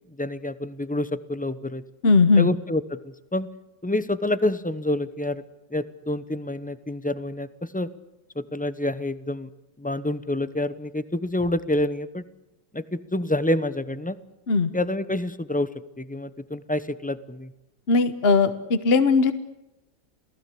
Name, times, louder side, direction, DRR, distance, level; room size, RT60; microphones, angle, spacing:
voice 1, 0.2-1.8 2.4-3.5 3.8-5.4 5.7-7.9 8.4-9.5 9.8-12.2 12.7-14.2 14.7-15.7 16.0-17.5, left 1 dB, 10° left, 14 dB, 0.5 m, -27 dB
voice 2, 2.0-2.5 14.5-14.7 17.9-19.3, left 4 dB, 40° left, 11 dB, 1.3 m, -18 dB
28.5 x 18.5 x 8.4 m, 0.96 s
omnidirectional pair, 1.9 m